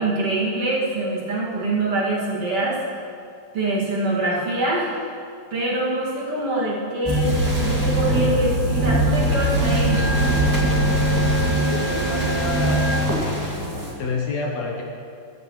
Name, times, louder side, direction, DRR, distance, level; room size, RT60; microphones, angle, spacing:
voice 1, 0.0-2.8 3.5-5.0 5.5-7.3 7.6-10.1, right 2 dB, 50° right, -6 dB, 2.9 m, -24 dB
sound 1, 7.0-13.9, right 1 dB, 10° right, 1.2 m, -21 dB
voice 2, 11.6-13.0 13.2-14.8, left 3 dB, 65° left, 0 dB, 2.1 m, -29 dB
14.5 x 14.5 x 3.1 m, 2.4 s
omnidirectional pair, 3.7 m